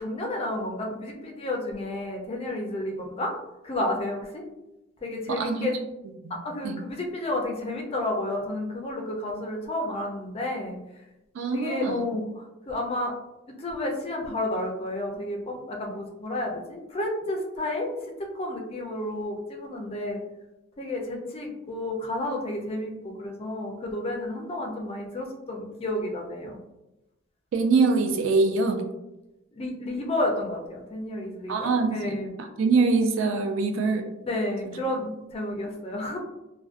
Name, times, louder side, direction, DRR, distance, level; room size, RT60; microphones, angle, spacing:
voice 1, 0.0-3.3 3.6-4.4 5.0-5.8 6.3-10.8 11.5-13.1 13.5-18.0 18.3-20.2 20.8-26.6 29.5-32.3 34.2-36.2, left 1 dB, 30° left, 1 dB, 0.4 m, -31 dB
voice 2, 5.3-5.7 6.2-6.4 6.6-6.8 11.3-12.0 27.5-28.8 31.5-32.1 32.4-34.1 34.6-34.7, right 4 dB, 70° right, 5 dB, 0.4 m, -24 dB
2.4 x 2.1 x 2.3 m, 0.95 s
head